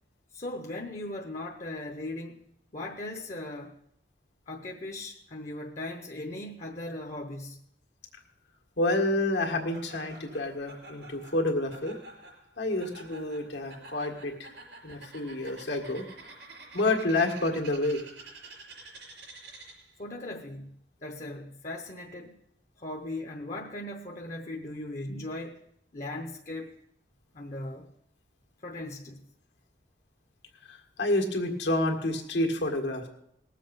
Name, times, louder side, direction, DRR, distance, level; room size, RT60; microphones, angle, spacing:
voice 1, 0.3-2.5 2.7-3.8 4.5-7.6 20.0-22.4 22.8-25.7 25.9-26.7 27.3-27.9 28.6-29.2, left 1 dB, 40° left, 3 dB, 0.8 m, -38 dB
voice 2, 8.8-12.0 12.6-14.5 14.8-16.0 16.7-18.0 30.6-33.1, left 2 dB, 80° left, 1 dB, 1.8 m, -29 dB
Laughter, 9.7-20.0, right 2 dB, 85° right, 4.7 m, -49 dB
19.5 x 7.6 x 5.4 m, 0.75 s
head